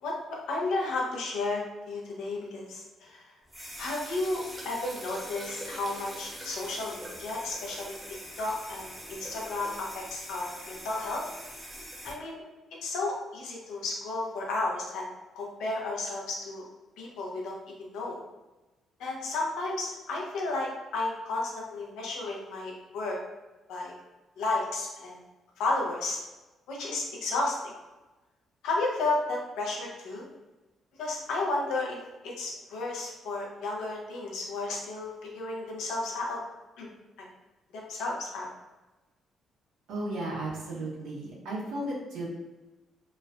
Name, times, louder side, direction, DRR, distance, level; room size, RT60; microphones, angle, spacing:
voice 1, 0.0-3.2 3.8-11.2 12.0-12.4 12.8-15.1 15.3-16.6 17.0-18.2 19.0-23.2 23.7-23.9 24.4-25.2 25.6-26.2 26.7-27.7 28.6-30.3 31.0-32.0 32.2-36.4 36.8-36.9 37.2-37.3 37.7-38.5, left 2 dB, 90° left, -2 dB, 0.6 m, -33 dB
sound 1, 3.5-12.1, equal, 5° right, 0.7 m, -43 dB
voice 2, 39.9-42.3, right 1 dB, 85° right, -5 dB, 0.9 m, -34 dB
3.1 x 2.2 x 2.4 m, 1.1 s
cardioid pair, 90°, 0 cm